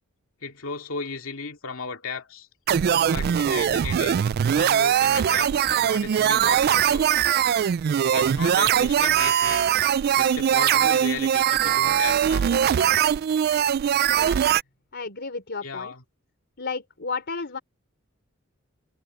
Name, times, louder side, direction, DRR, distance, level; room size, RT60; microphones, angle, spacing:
voice 1, 0.4-2.5 3.1-4.2 4.6-7.1 8.1-9.7 10.2-12.5 15.6-16.0, left 4 dB, 75° left, 2.5 m, -35 dB
sound 1, 2.7-14.6, right 9 dB, 50° right, 0.3 m, -21 dB
voice 2, 14.9-15.9 16.6-17.6, left 4 dB, 55° left, 3.7 m, -33 dB
head